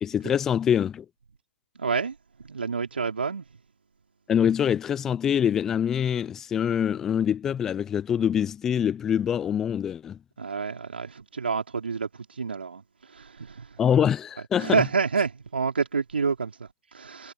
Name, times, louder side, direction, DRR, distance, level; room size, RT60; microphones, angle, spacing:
voice 1, 0.0-1.1 4.3-10.2 13.8-14.8, left 8 dB, 5° left, 0.7 m, -24 dB
voice 2, 1.7-3.5 10.4-13.8 14.6-17.3, right 5 dB, 50° right, 4.6 m, -29 dB
figure-of-eight pair, 160°, 7 cm